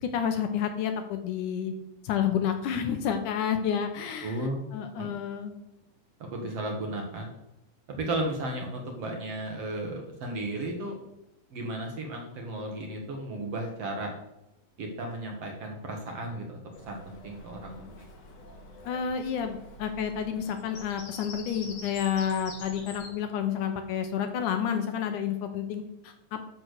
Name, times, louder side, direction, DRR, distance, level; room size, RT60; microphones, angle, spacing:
voice 1, 0.0-1.7 2.0-5.6 18.8-26.4, left 8 dB, 75° left, 6 dB, 2.1 m, -30 dB
voice 2, 4.2-4.7 5.0-5.1 6.3-7.3 8.0-11.0 11.5-14.1 14.8-16.6 16.9-18.1, right 1 dB, 55° right, 1 dB, 2.1 m, -34 dB
Bird vocalization bird call bird song, 16.7-23.1, left 3 dB, 55° left, 2.5 m, -46 dB
12.5 x 4.4 x 6.6 m, 0.88 s
omnidirectional pair, 4.0 m